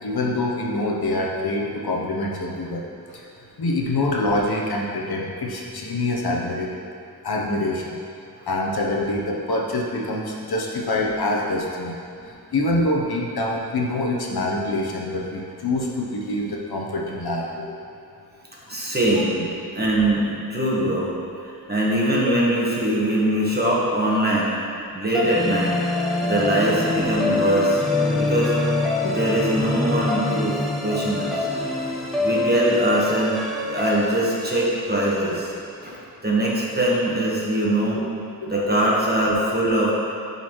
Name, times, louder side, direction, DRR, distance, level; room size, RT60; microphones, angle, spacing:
voice 1, 0.0-2.8 3.1-3.3 3.6-6.7 7.2-8.0 8.5-12.0 12.5-17.7 19.4-19.5 29.0-29.2 37.9-38.0 38.4-38.5, left 2 dB, 75° left, -2 dB, 0.9 m, -25 dB
voice 2, 18.7-19.4 19.7-21.1 21.4-24.6 24.9-25.7 26.2-27.8 28.1-28.5 29.0-31.5 32.2-35.5 35.8-35.9 36.2-38.0 38.5-39.9, right 1 dB, 25° right, -5 dB, 1.3 m, -22 dB
sound 1, 25.1-35.4, left 2 dB, ahead, 0.9 m, -25 dB
10.0 x 4.1 x 3.1 m, 2.5 s
wide cardioid pair, 95°, 38 cm